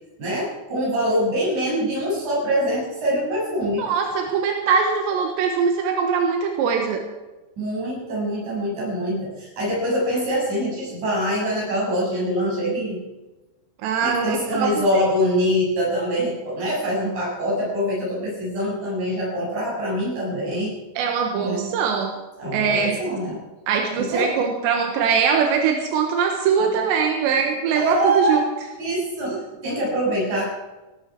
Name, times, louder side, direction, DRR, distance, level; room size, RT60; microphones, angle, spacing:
voice 1, 0.2-3.9 7.6-13.0 14.0-20.8 21.4-21.8 22.4-23.4 24.0-24.3 27.8-28.3 28.8-30.5, equal, 40° right, -4 dB, 8.3 m, -24 dB
voice 2, 3.8-7.1 13.8-14.7 21.0-22.1 22.5-23.0 23.7-28.5 29.3-29.4, right 6 dB, 85° right, 3 dB, 3.6 m, -22 dB
18.0 x 15.0 x 4.7 m, 1.1 s
omnidirectional pair, 5.0 m